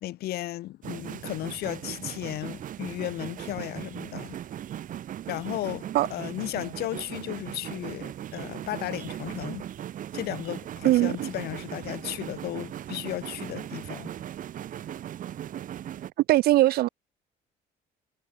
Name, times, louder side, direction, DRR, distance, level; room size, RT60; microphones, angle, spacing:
voice 1, 0.0-4.4 5.3-9.7 10.1-14.1, left 15 dB, 75° left, 2.5 m, -35 dB
sound 1, 0.8-16.1, right 11 dB, 55° right, 1.7 m, -38 dB
voice 2, 10.8-11.3 16.3-16.9, right 16 dB, 70° right, 0.8 m, -20 dB
cardioid pair, 110°, 16 cm